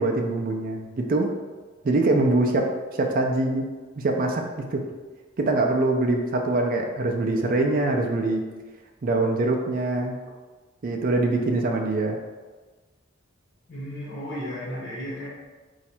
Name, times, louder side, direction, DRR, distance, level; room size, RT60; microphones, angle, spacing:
voice 1, 0.0-1.3 1.8-2.7 3.0-3.7 4.0-4.4 4.7-4.8 5.4-8.4 9.0-10.2 10.8-12.2, right 2 dB, 45° right, 1 dB, 0.4 m, -23 dB
voice 2, 13.7-15.3, equal, 60° left, -5 dB, 1.3 m, -34 dB
4.1 x 2.4 x 4.3 m, 1.3 s
head